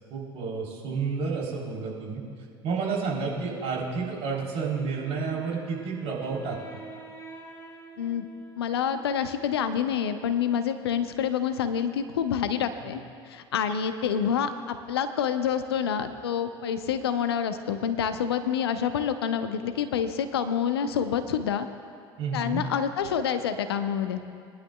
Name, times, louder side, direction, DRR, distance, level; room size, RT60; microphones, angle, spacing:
voice 1, 0.1-2.2 2.6-6.6 22.2-22.6, right 4 dB, 50° right, -3 dB, 3.5 m, -30 dB
Wind instrument woodwind instrument, 4.7-9.5, right 3 dB, 20° left, 2.5 m, -47 dB
voice 2, 8.0-8.3 8.6-13.0 13.3-21.7 22.3-24.2, left 8 dB, 75° left, 10 dB, 0.7 m, -27 dB
22.0 x 11.0 x 2.3 m, 2.3 s
figure-of-eight pair, 70°, 13 cm